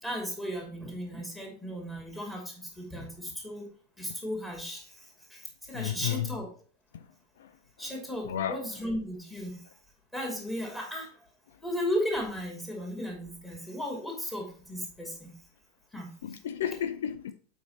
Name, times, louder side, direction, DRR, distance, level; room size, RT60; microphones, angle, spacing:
voice 1, 0.0-3.7 4.0-6.5 7.8-9.6 10.1-11.1 11.6-15.3 15.9-16.2, equal, 10° left, 2.7 m, -35 dB
voice 2, 5.8-6.3 6.9-7.0 8.3-8.6 16.2-17.3, left 10 dB, 60° left, 0.5 m, -32 dB
7.7 x 4.7 x 4.2 m
figure-of-eight pair, 90°, 0 cm